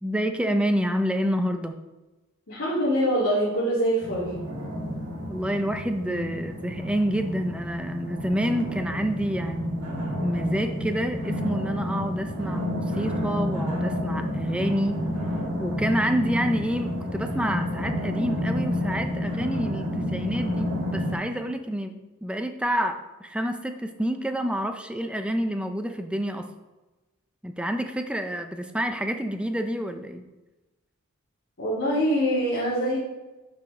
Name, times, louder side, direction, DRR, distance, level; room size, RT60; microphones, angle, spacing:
voice 1, 0.0-1.7 5.3-15.0 15.6-21.9 22.2-26.5 27.4-30.2, equal, 5° right, 6 dB, 0.5 m, -28 dB
voice 2, 2.5-4.3 31.6-33.0, equal, 60° left, -10 dB, 2.2 m, -24 dB
sound 1, 4.0-21.1, left 1 dB, 80° right, 1.6 m, -30 dB
9.1 x 5.0 x 3.7 m, 1.1 s
head